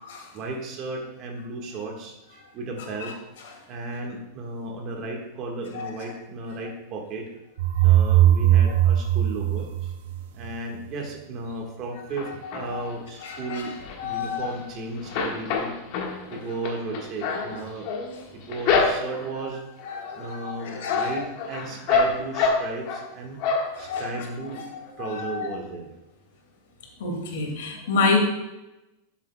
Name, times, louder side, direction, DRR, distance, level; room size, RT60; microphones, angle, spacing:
voice 1, 0.3-3.2 3.7-7.3 7.8-9.9 10.3-13.7 14.0-15.7 16.3-17.9 18.3-19.6 20.1-23.4 23.8-24.6 25.0-25.9, right 3 dB, 35° right, 2 dB, 1.4 m, -34 dB
sound 1, 7.6-10.5, right 12 dB, 65° right, 0.4 m, -19 dB
sound 2, 12.2-12.9 13.4-14.7 15.0-19.4 19.8-20.3 20.6-23.1 23.4-24.1 24.5-24.6 24.8-24.9, left 4 dB, 45° left, 1.4 m, -27 dB
voice 2, 13.2-13.6 14.0-14.6 17.3-17.4 19.9-21.2 23.5-24.3 25.0-25.6 27.0-28.2, left 4 dB, 75° left, 2 dB, 2.1 m, -29 dB
11.5 x 7.3 x 2.2 m, 0.98 s
supercardioid pair, 165°, 0 cm